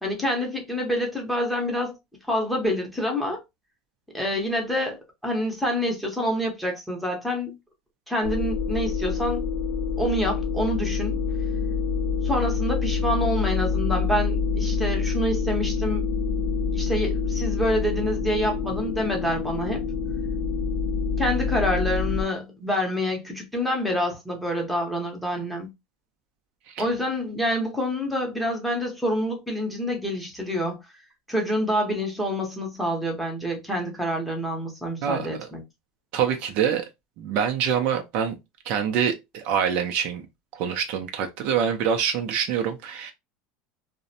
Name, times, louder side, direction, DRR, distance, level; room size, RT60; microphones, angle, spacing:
voice 1, 0.0-2.0 2.3-3.4 4.1-7.6 8.1-9.4 10.0-11.2 12.2-16.1 16.7-19.8 21.2-25.7 26.8-30.8 31.3-35.6, equal, ahead, 0.7 m, -27 dB
sound 1, 8.2-22.2, left 5 dB, 65° left, 0.5 m, -26 dB
voice 2, 35.0-35.5 36.1-36.8 37.2-38.4 38.7-40.3 40.5-43.1, right 8 dB, 50° right, 0.4 m, -25 dB
2.5 x 2.0 x 2.6 m
supercardioid pair, 150°, 3 cm